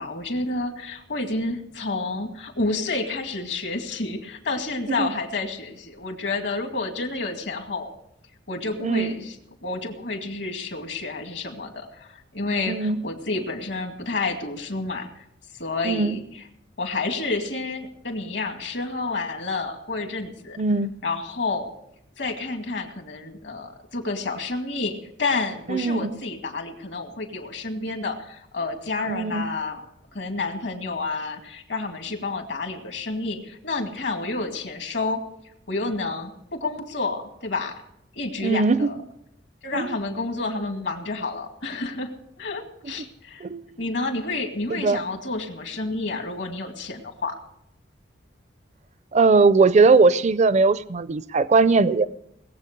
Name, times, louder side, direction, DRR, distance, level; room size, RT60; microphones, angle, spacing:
voice 1, 0.0-7.9 8.5-9.4 9.6-15.2 15.5-16.2 16.8-20.6 21.0-21.7 22.2-29.8 30.1-35.2 35.7-37.7 38.1-39.0 39.6-42.1 42.4-43.5 43.8-47.4, left 3 dB, 70° left, 5 dB, 2.2 m, -29 dB
voice 2, 8.8-9.2 12.7-13.0 15.8-16.2 20.6-20.9 25.7-26.2 29.1-29.5 38.4-38.9 39.7-40.0 42.9-43.0 43.4-43.7 44.7-45.0 49.1-52.1, right 4 dB, 40° right, 16 dB, 0.4 m, -20 dB
19.5 x 8.0 x 6.7 m, 0.76 s
head